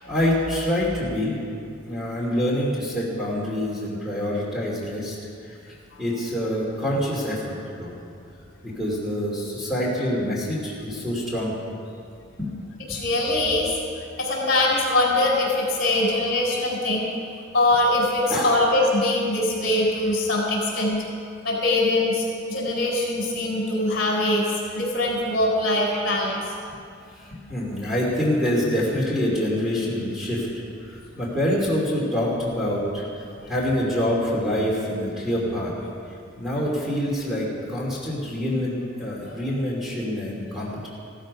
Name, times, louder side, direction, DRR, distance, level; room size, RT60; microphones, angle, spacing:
voice 1, 0.1-1.4 1.9-5.2 5.4-8.0 8.6-11.5 12.4-12.5 12.9-13.0 18.3-18.6 27.1-30.5 30.8-35.7 36.4-40.9, left 1 dB, ahead, -5 dB, 2.7 m, -26 dB
voice 2, 12.9-13.7 14.2-17.1 17.5-21.0 21.4-26.4 39.3-39.4, left 2 dB, 55° left, -2 dB, 4.5 m, -22 dB
15.5 x 14.0 x 5.3 m, 2.4 s
head